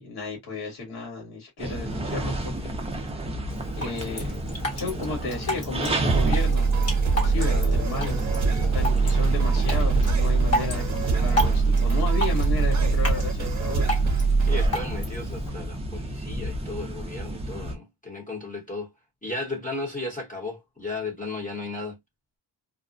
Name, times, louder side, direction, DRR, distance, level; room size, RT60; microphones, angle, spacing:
voice 1, 0.0-2.8 3.8-4.4 4.7-6.7 7.1-13.9, left 3 dB, 55° left, 1.4 m, -33 dB
sound 1, 1.6-17.8, right 1 dB, 15° right, 0.4 m, -32 dB
Drip, 3.5-15.5, left 1 dB, 30° left, 1.1 m, -33 dB
sound 2, 6.1-14.7, right 4 dB, 35° right, 0.8 m, -23 dB
voice 2, 14.4-18.9 19.2-22.0, left 2 dB, 15° left, 1.0 m, -35 dB
2.4 x 2.1 x 2.4 m
wide cardioid pair, 155°, 47 cm